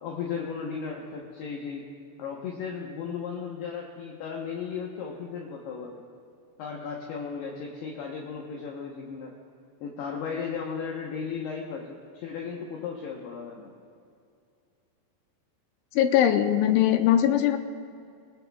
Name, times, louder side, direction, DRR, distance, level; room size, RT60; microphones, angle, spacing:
voice 1, 0.0-1.8 2.2-6.0 6.6-9.3 9.8-13.7, left 6 dB, 70° left, -1 dB, 2.7 m, -35 dB
voice 2, 16.0-17.6, left 11 dB, 85° left, 7 dB, 3.0 m, -21 dB
21.0 x 19.5 x 2.3 m, 2.4 s
omnidirectional pair, 5.4 m